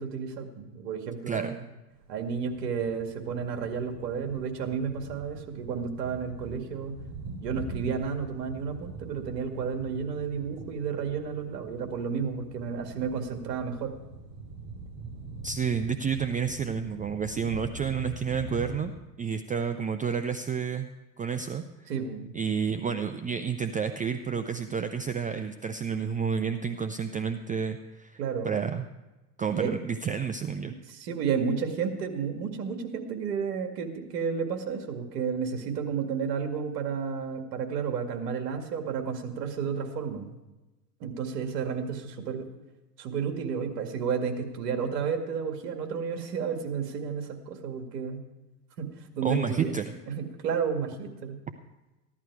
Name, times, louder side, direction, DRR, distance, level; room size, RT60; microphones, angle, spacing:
voice 1, 0.0-1.6 2.1-7.0 7.4-13.9 21.9-22.3 28.2-28.5 29.5-29.7 30.6-40.3 41.0-42.5 43.0-48.2 48.8-49.7 50.1-51.4, right 6 dB, 75° right, 5 dB, 2.2 m, -32 dB
sound 1, 1.9-18.9, right 3 dB, 55° right, 4.9 m, -43 dB
voice 2, 15.4-18.9 19.2-20.9 21.2-21.9 22.3-28.2 28.4-28.8 29.4-30.7 49.2-49.8, right 6 dB, 15° right, 8 dB, 0.5 m, -30 dB
15.5 x 11.5 x 4.7 m, 1.1 s
hypercardioid pair, 100°, 49 cm